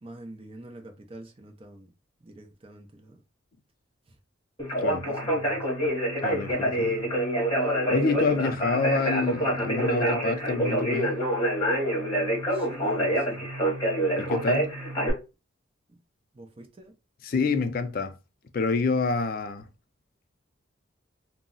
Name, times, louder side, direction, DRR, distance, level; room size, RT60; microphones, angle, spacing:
voice 1, 0.0-1.9 2.2-3.2 4.8-5.6 12.5-13.4 16.3-16.9, right 1 dB, 30° right, 0.5 m, -46 dB
Conversation, 4.6-15.1, right 1 dB, 20° left, 1.0 m, -26 dB
voice 2, 6.2-7.2 7.9-11.2 14.2-14.8 17.2-18.1 18.5-19.7, left 4 dB, 45° left, 0.3 m, -27 dB
2.3 x 2.0 x 3.7 m
head